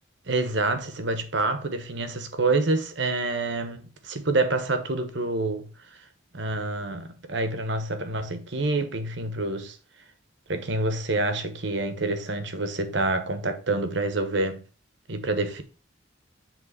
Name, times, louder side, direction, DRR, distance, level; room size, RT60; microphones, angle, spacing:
voice 1, 0.3-5.7 6.3-9.8 10.5-14.6 15.1-15.6, right 2 dB, 60° right, 1.1 m, -27 dB
7.4 x 3.8 x 5.5 m
head